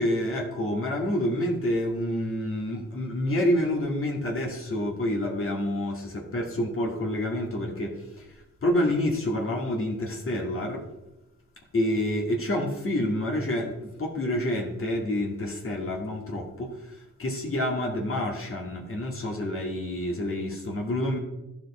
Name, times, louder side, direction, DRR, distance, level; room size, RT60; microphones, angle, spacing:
voice 1, 0.0-10.9 11.7-21.2, left 1 dB, 45° left, 0 dB, 2.0 m, -28 dB
14.0 x 5.1 x 4.2 m, 0.99 s
cardioid pair, 95°, 30 cm